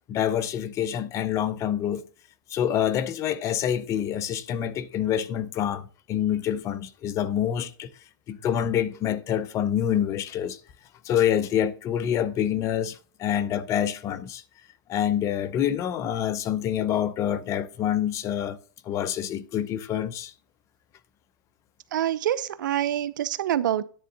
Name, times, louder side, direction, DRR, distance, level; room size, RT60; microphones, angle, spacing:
voice 1, 0.1-2.1 2.5-7.9 8.3-10.6 11.0-14.4 14.9-18.6 18.9-20.3, left 10 dB, 30° left, 0.7 m, -26 dB
voice 2, 21.9-23.8, right 11 dB, 70° right, 0.7 m, -26 dB
10.5 x 3.7 x 6.7 m
hypercardioid pair, 135°, 11 cm